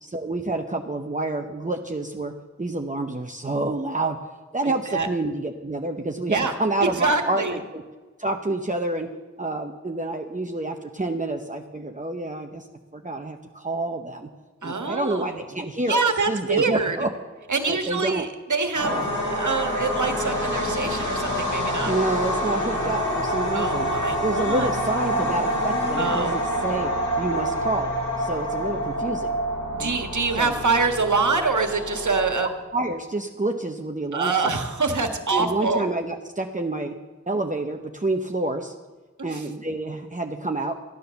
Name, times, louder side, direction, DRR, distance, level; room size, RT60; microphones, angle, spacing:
voice 1, 0.0-2.3 2.6-4.2 4.5-7.8 8.2-9.1 9.4-12.7 12.9-14.3 14.6-17.1 17.7-18.3 18.8-19.1 21.8-23.9 24.2-29.3 29.8-30.1 30.4-30.5 32.7-34.5 35.3-36.9 37.3-38.7 39.2-40.9, right 2 dB, 25° right, 3 dB, 0.9 m, -28 dB
voice 2, 6.8-7.6 14.6-15.4 15.9-17.0 17.5-19.0 19.4-21.9 22.5-22.9 23.5-24.7 26.0-26.4 29.7-32.5 34.1-35.9 39.2-39.5, right 4 dB, 85° right, 6 dB, 1.5 m, -25 dB
sound 1, 18.7-32.3, equal, 85° left, 4.8 m, -27 dB
14.5 x 10.0 x 7.0 m, 1.3 s
wide cardioid pair, 70°, 29 cm